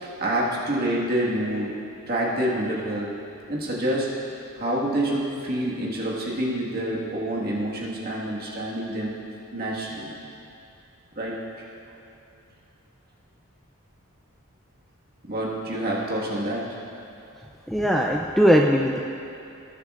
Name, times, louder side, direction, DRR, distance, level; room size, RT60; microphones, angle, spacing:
voice 1, 0.0-1.7 2.1-3.1 3.5-4.1 4.6-9.2 9.5-10.2 11.1-11.3 15.2-16.6, right 1 dB, 45° right, -4 dB, 1.7 m, -27 dB
voice 2, 17.7-19.0, equal, ahead, 0 dB, 0.3 m, -19 dB
18.5 x 7.3 x 2.5 m, 2.7 s
head